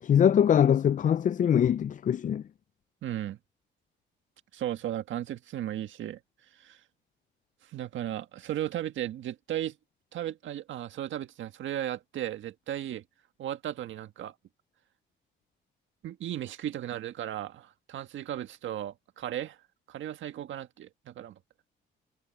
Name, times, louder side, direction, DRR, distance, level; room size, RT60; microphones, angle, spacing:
voice 1, 0.0-2.4, left 9 dB, 40° left, 0.4 m, -23 dB
voice 2, 3.0-3.4 4.5-6.2 6.5-6.8 7.6-9.8 10.1-13.0 13.4-14.3 16.0-19.6 19.9-21.4, right 12 dB, 75° right, 1.7 m, -35 dB
cardioid pair, 90°, 20 cm